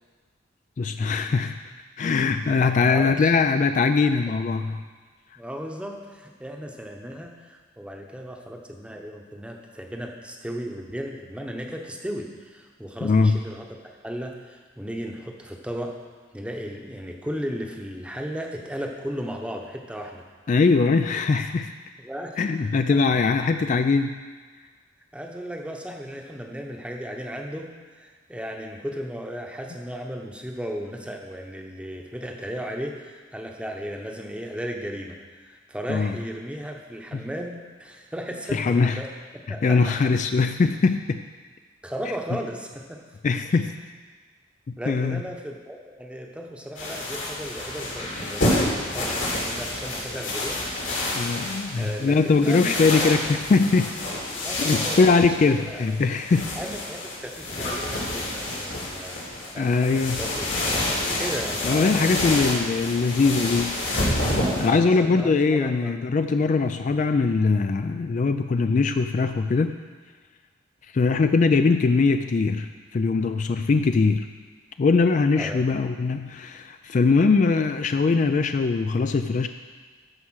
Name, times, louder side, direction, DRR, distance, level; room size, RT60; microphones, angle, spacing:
voice 1, 0.8-1.6 2.0-4.8 13.0-13.4 20.5-21.7 22.4-24.2 35.9-36.1 37.1-37.2 38.5-39.0 39.6-41.2 43.2-43.7 44.9-45.2 51.1-53.9 54.6-56.5 59.6-60.2 61.6-63.8 64.6-69.8 70.9-74.3 74.8-79.5, left 4 dB, 40° left, 8 dB, 0.3 m, -21 dB
voice 2, 2.6-3.3 5.4-15.9 16.3-20.3 22.0-22.4 22.9-23.0 25.1-39.1 39.5-40.1 41.8-43.0 44.8-50.6 51.8-53.3 54.4-55.8 56.6-60.6 61.2-62.6 63.0-63.1 64.4-66.0 71.1-71.3 75.4-75.7, equal, 5° right, 2 dB, 0.9 m, -35 dB
sound 1, 46.8-64.7, left 1 dB, 75° left, 3.1 m, -28 dB
13.0 x 4.8 x 6.3 m, 1.4 s
head